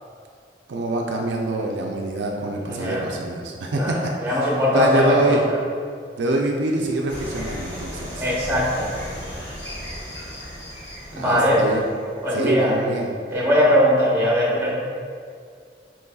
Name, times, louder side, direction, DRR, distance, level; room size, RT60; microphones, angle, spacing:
voice 1, 0.7-5.4 6.2-8.3 11.1-11.9 12.3-13.1, right 2 dB, 80° right, 0 dB, 0.4 m, -25 dB
voice 2, 2.6-3.0 3.7-4.0 4.2-5.4 8.2-8.9 11.1-11.6 12.2-12.7 13.3-14.7, equal, 15° right, -6 dB, 0.9 m, -20 dB
sound 1, 7.1-12.2, equal, 65° left, 1.3 m, -35 dB
5.2 x 3.1 x 2.3 m, 2.2 s
head